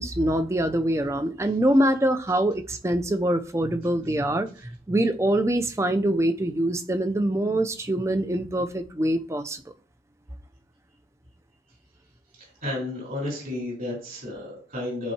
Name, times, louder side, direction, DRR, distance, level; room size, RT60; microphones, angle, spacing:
voice 1, 0.0-9.6, right 1 dB, 15° right, 0.5 m, -24 dB
voice 2, 12.4-15.1, left 1 dB, 50° right, 4.3 m, -32 dB
13.0 x 4.4 x 2.8 m
head